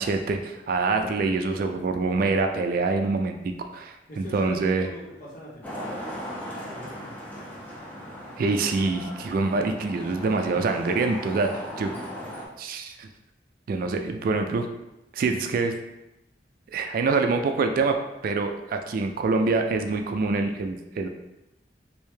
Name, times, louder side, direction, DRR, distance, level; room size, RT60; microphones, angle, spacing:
voice 1, 0.0-4.9 8.4-11.9 12.6-13.1 13.7-14.7 15.1-15.7 16.7-18.0 18.2-21.1, right 3 dB, 55° right, 6 dB, 0.3 m, -25 dB
voice 2, 4.1-6.1 6.4-7.7 10.2-10.3 11.8-12.4, left 1 dB, 50° left, -5 dB, 1.0 m, -43 dB
Traffic noise roadway noise, 5.6-12.5, equal, 10° left, 0.7 m, -38 dB
3.2 x 2.7 x 3.3 m, 0.92 s
head